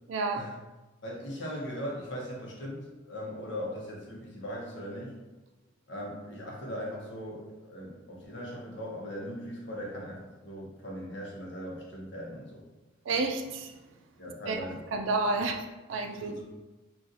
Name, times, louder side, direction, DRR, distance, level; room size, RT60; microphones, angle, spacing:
voice 1, 0.1-0.5 13.1-13.8 14.5-14.6 14.9-16.3, right 3 dB, 75° right, 4 dB, 0.4 m, -30 dB
voice 2, 1.0-5.2 5.9-12.6 14.2-14.8 16.2-16.4, equal, 65° left, -3 dB, 0.8 m, -39 dB
4.0 x 2.4 x 2.5 m, 1.1 s
head